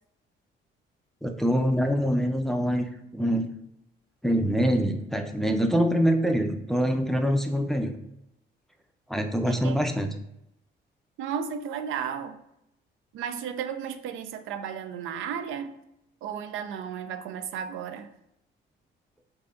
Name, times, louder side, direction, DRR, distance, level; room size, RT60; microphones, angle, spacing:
voice 1, 1.2-3.5 4.2-8.0 9.1-10.1, equal, ahead, 5 dB, 0.4 m, -25 dB
voice 2, 9.5-9.8 11.2-12.4 13.1-15.7 16.2-18.1, right 8 dB, 85° right, 9 dB, 0.4 m, -34 dB
4.6 x 2.6 x 2.5 m, 0.82 s
cardioid pair, 90°, 20 cm